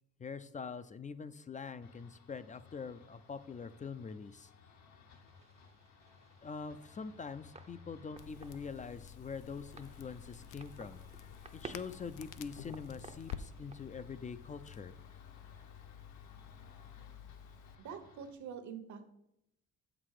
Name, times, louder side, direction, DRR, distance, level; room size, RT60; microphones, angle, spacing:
voice 1, 0.2-4.5 6.4-11.0 11.5-14.9, left 5 dB, 25° left, 13 dB, 0.4 m, -44 dB
sound 1, 1.8-18.3, left 5 dB, 70° left, 1.1 m, -60 dB
sound 2, 5.1-13.8, right 4 dB, 20° right, 0.6 m, -56 dB
Crackle, 8.2-17.8, left 9 dB, 90° left, 0.5 m, -50 dB
voice 2, 16.3-17.2 17.8-19.1, right 7 dB, 70° right, 8 dB, 1.1 m, -48 dB
7.4 x 6.0 x 4.8 m, 0.82 s
cardioid pair, 90°, 30 cm